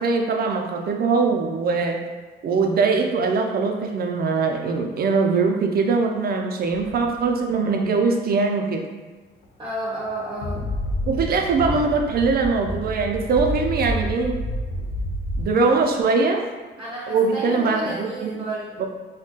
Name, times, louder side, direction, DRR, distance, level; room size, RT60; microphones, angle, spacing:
voice 1, 0.0-2.0 2.4-8.8 11.1-14.4 15.4-16.5 17.1-18.4 18.8-18.9, right 4 dB, 50° right, 3 dB, 0.5 m, -22 dB
sound 1, 6.7-7.3 9.4-9.5 10.0-15.5, equal, 85° left, 0.5 m, -29 dB
voice 2, 9.6-10.6 16.8-18.8, right 1 dB, 25° right, -8 dB, 0.8 m, -31 dB
2.4 x 2.2 x 3.7 m, 1.3 s
cardioid pair, 90°, 20 cm